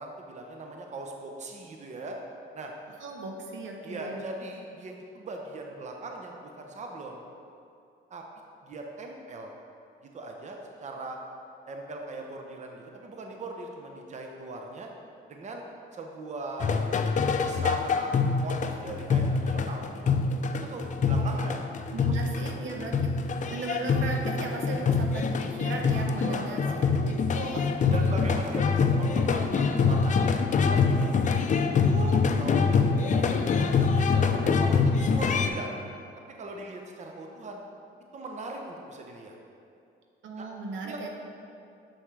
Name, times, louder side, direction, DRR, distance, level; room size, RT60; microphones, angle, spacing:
voice 1, 0.0-2.2 2.5-2.7 3.8-7.2 8.1-8.2 8.6-9.5 10.0-11.2 11.7-14.9 15.3-15.6 15.9-16.8 17.4-18.1 18.4-19.9 20.7-21.6 22.1-22.2 26.2-27.0 27.9-32.8 33.2-35.7 36.2-37.6 38.1-39.4 40.4-40.5 40.8-41.0, right 2 dB, 35° right, 2 dB, 0.7 m, -40 dB
voice 2, 3.0-4.2 21.0-21.3 21.9-23.1 23.5-26.6 27.0-28.3 40.2-41.1, right 3 dB, 75° right, 1 dB, 0.9 m, -37 dB
sound 1, 16.6-35.5, left 5 dB, 40° left, 0.4 m, -25 dB
7.1 x 5.5 x 3.3 m, 2.5 s
cardioid pair, 90°, 20 cm